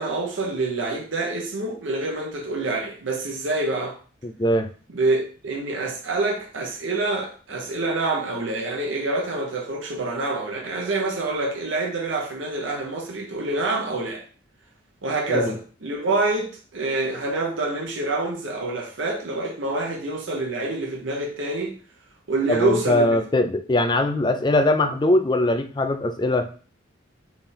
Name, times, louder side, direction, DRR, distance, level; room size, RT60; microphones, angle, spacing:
voice 1, 0.0-4.0 4.9-14.2 15.0-21.7 22.3-23.2, right 2 dB, 70° right, 0.8 m, -26 dB
voice 2, 4.2-4.7 15.3-15.5 22.5-26.5, left 1 dB, 20° left, 0.3 m, -21 dB
3.4 x 3.4 x 4.3 m
head